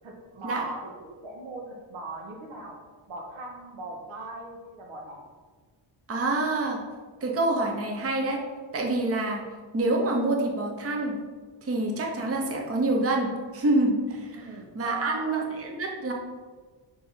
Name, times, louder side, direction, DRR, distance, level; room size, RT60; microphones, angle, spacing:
voice 1, 0.0-2.8 3.1-5.2 14.3-15.3, right 2 dB, 85° right, 0 dB, 1.8 m, -40 dB
voice 2, 6.1-6.8 7.2-8.4 8.7-9.4 9.7-11.2 11.6-14.5 14.7-16.1, right 2 dB, 30° right, 0 dB, 0.9 m, -26 dB
5.5 x 5.2 x 5.6 m, 1.4 s
wide cardioid pair, 175°, 47 cm